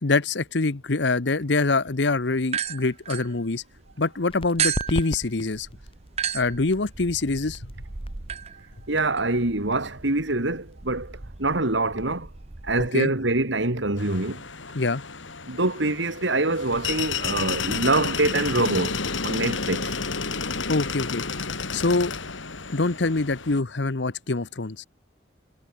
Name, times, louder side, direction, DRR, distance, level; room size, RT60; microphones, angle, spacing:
voice 1, 0.0-3.6 4.0-5.7 6.3-7.6 12.9-13.1 14.7-15.0 20.7-21.2 21.7-22.1 22.7-24.8, left 3 dB, 70° left, 1.0 m, -24 dB
sound 1, 2.4-3.9 4.6-12.9, right 8 dB, 35° right, 0.8 m, -34 dB
sound 2, 4.3-11.6, equal, 30° left, 2.9 m, -39 dB
voice 2, 8.9-12.3 12.6-14.4 15.5-20.0, right 2 dB, 75° right, 2.6 m, -25 dB
sound 3, 14.0-23.6, left 5 dB, 90° left, 3.0 m, -31 dB
head